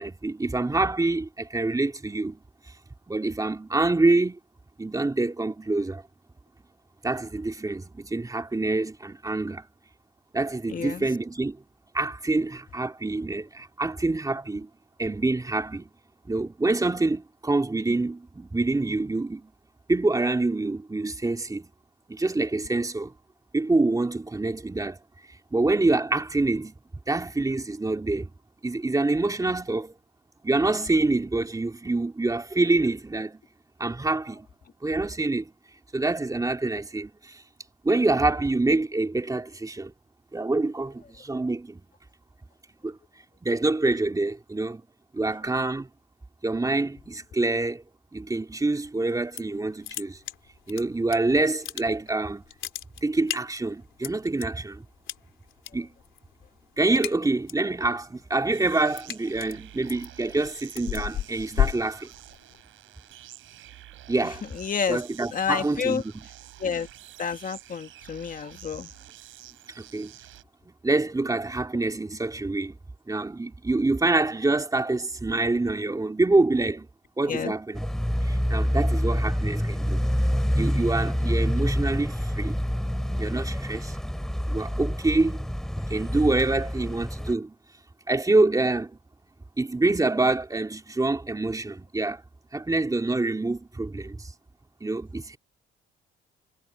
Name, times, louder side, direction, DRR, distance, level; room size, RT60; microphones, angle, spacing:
voice 1, 0.0-2.4 3.1-4.4 4.8-6.0 7.0-9.7 10.3-11.6 11.9-14.7 15.0-15.9 16.2-19.5 19.9-21.7 22.1-23.1 23.5-25.0 25.3-26.7 27.1-28.3 28.6-29.9 30.4-33.4 33.8-34.5 34.8-35.5 35.9-37.4 37.8-39.9 40.3-41.8 42.8-43.0 43.4-44.8 45.1-45.9 46.4-47.8 48.1-50.2 50.7-52.4 53.0-54.8 55.7-55.9 56.8-62.1 64.1-64.4 64.9-66.0 69.8-70.1 70.8-72.8 73.1-76.9 77.2-77.9 78.2-80.0 80.5-82.6 83.2-84.0 84.5-85.4 85.8-87.5 88.1-88.9 89.6-92.2 92.5-94.3 94.8-95.4, right 2 dB, 15° right, 3.3 m, -26 dB
voice 2, 10.7-11.1 64.2-65.0 65.3-66.0 66.6-66.9 67.2-68.9 77.3-77.5, left 6 dB, 45° left, 1.6 m, -29 dB
sound 1, 49.1-49.6 49.8-51.2 51.5-52.2 52.4-54.5 55.1-55.7 56.0-56.3 56.6-57.7 58.1-62.6, left 11 dB, 75° left, 3.4 m, -32 dB
sound 2, 58.5-70.4, right 14 dB, 85° right, 6.7 m, -48 dB
sound 3, 77.8-87.3, equal, ahead, 3.5 m, -27 dB
cardioid pair, 90°, 20 cm